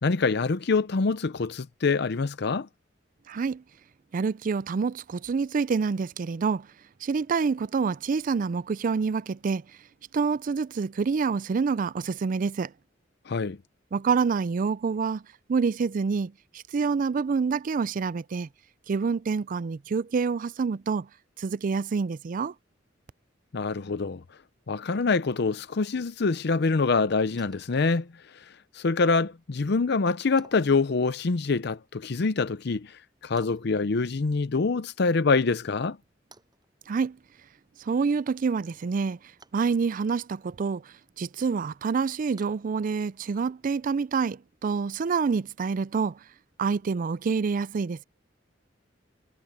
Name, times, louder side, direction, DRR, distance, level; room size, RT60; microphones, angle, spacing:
voice 1, 0.0-2.7 13.3-13.6 23.5-24.2 24.7-28.1 28.7-32.9 33.2-36.0, left 4 dB, 65° left, 0.6 m, -25 dB
voice 2, 3.3-3.6 4.1-6.7 7.0-9.6 10.1-12.7 13.9-15.2 15.5-18.5 18.9-21.1 21.4-22.5 36.9-37.2 37.8-39.2 39.5-40.8 41.2-46.2 46.6-48.0, right 5 dB, 45° right, 0.4 m, -27 dB
Wood, 27.4-28.5 29.0-29.1 30.4-30.8 33.4-34.5 34.8-34.9 35.6-35.7 36.3-37.0 39.4-40.1 40.6-41.1 41.5-41.6 42.4-43.4 43.9-44.0, right 3 dB, 25° right, 6.7 m, -57 dB
head